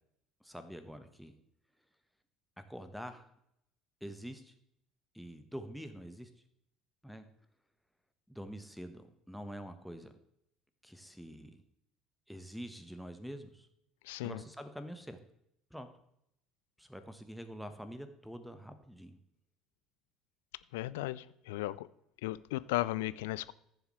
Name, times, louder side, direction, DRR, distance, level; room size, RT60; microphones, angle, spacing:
voice 1, 0.4-1.4 2.6-3.3 4.0-4.5 5.1-6.3 7.0-7.3 8.3-10.1 10.8-11.6 12.3-13.7 14.2-15.2 15.7-15.9 16.8-19.2, equal, ahead, 9 dB, 1.2 m, -46 dB
voice 2, 14.1-14.4 20.7-21.9 22.2-23.5, left 17 dB, 65° left, 17 dB, 0.4 m, -35 dB
14.5 x 7.1 x 3.2 m, 0.76 s
figure-of-eight pair, 60°, 0 cm